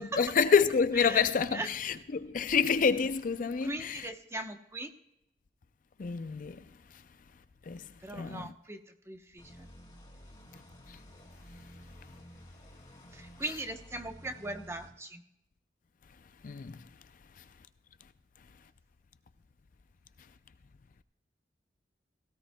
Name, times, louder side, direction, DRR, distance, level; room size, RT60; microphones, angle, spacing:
voice 1, 0.0-4.1 6.0-6.6 7.7-7.8 8.1-8.5 16.4-16.8, left 6 dB, 50° left, 0.5 m, -28 dB
voice 2, 1.0-1.7 3.6-4.9 8.0-9.7 13.1-15.2, right 2 dB, 15° right, 0.9 m, -39 dB
sound 1, 9.4-14.9, equal, 25° left, 2.8 m, -52 dB
17.5 x 16.0 x 2.3 m
head